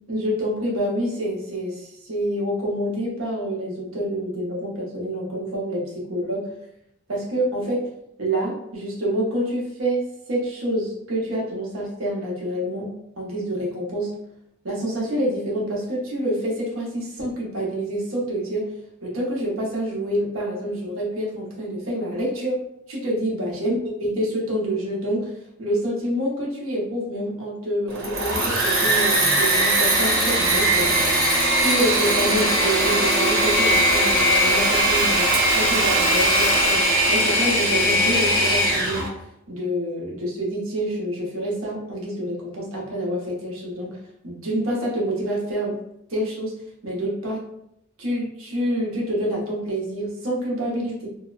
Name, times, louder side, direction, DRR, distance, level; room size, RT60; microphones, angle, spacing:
voice 1, 0.1-6.5 7.1-7.9 8.2-14.1 14.6-18.7 19.0-22.6 22.9-25.3 25.6-31.0 31.6-44.0 44.2-45.8 46.1-46.6 46.8-47.4 48.0-51.1, right 1 dB, 90° right, -4 dB, 0.8 m, -27 dB
Engine / Mechanisms, 27.9-39.1, right 1 dB, 70° right, 1.1 m, -20 dB
2.7 x 2.0 x 2.4 m, 0.79 s
head